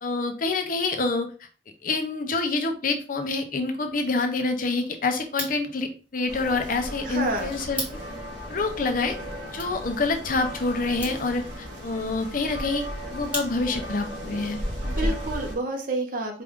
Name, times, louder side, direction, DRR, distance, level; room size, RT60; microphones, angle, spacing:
voice 1, 0.0-1.3 1.8-7.8 8.5-9.2 9.5-12.8 13.1-14.6 15.0-15.1, left 3 dB, 45° left, 6 dB, 0.7 m, -27 dB
sound 1, 5.2-13.9, equal, 10° right, 1.2 m, -41 dB
sound 2, 6.3-15.6, equal, 80° right, 1.3 m, -35 dB
voice 2, 7.0-7.5 14.8-16.4, right 2 dB, 50° right, 4 dB, 0.9 m, -29 dB
4.7 x 2.5 x 3.6 m, 0.36 s
head